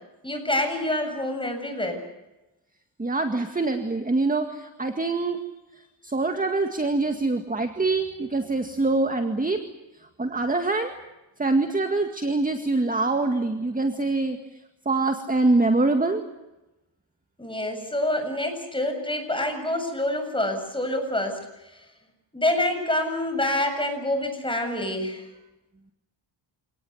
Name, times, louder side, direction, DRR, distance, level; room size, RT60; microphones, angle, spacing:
voice 1, 0.2-2.0 17.4-21.8 22.3-25.3, left 1 dB, 10° left, 5 dB, 7.3 m, -27 dB
voice 2, 3.0-5.4 6.0-9.6 10.2-10.9 11.4-14.4 14.9-16.2, right 3 dB, 15° right, 6 dB, 2.0 m, -24 dB
28.5 x 18.5 x 8.1 m, 0.98 s
cardioid pair, 100°, 48 cm